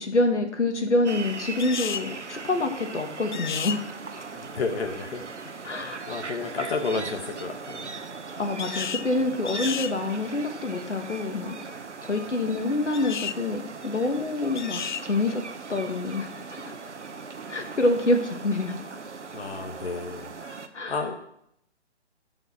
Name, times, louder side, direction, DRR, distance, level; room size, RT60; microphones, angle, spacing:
voice 1, 0.0-3.8 5.6-6.0 8.3-11.6 12.0-15.4 15.7-16.8 17.5-18.8 20.7-21.0, left 2 dB, 85° left, 6 dB, 1.9 m, -26 dB
sound 1, 1.0-20.7, right 4 dB, 85° right, 1.3 m, -39 dB
sound 2, 1.6-2.1 3.3-3.8 8.6-9.1 9.5-9.9 12.9-13.4 14.5-15.1, left 8 dB, 45° left, 0.4 m, -32 dB
voice 2, 4.3-5.5 5.8-7.9 19.3-20.6 20.9-21.2, left 4 dB, 60° left, 4 dB, 1.5 m, -32 dB
14.0 x 5.7 x 6.0 m, 0.74 s
figure-of-eight pair, 145°, 34 cm